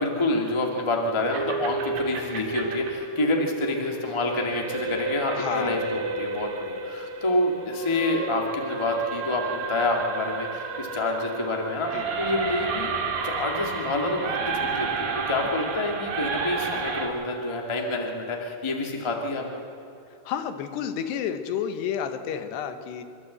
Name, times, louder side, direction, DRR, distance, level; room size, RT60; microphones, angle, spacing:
voice 1, 0.0-12.9 13.2-19.4, left 2 dB, 45° left, 1 dB, 0.3 m, -27 dB
sound 1, 1.3-17.1, right 4 dB, 60° right, 3.4 m, -31 dB
voice 2, 5.4-5.9 11.9-12.1 20.3-23.0, left 8 dB, 90° left, 8 dB, 3.2 m, -30 dB
26.5 x 12.5 x 7.8 m, 2.7 s
omnidirectional pair, 4.6 m